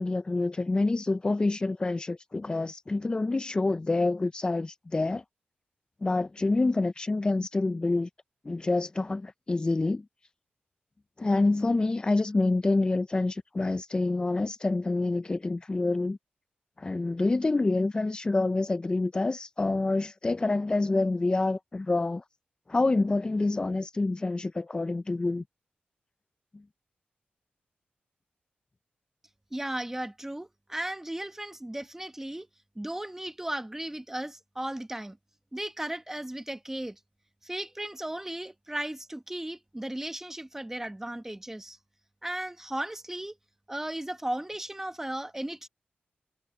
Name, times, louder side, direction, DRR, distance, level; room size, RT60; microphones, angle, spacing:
voice 1, 0.0-5.2 6.0-8.1 8.4-10.0 11.2-16.2 16.8-22.2 22.7-25.4, left 2 dB, 25° left, 0.4 m, -27 dB
voice 2, 29.5-32.5 32.7-35.2 35.5-37.0 37.4-41.8 42.2-43.3 43.7-45.7, right 1 dB, 10° right, 1.3 m, -36 dB
cardioid pair, 85°, 4 cm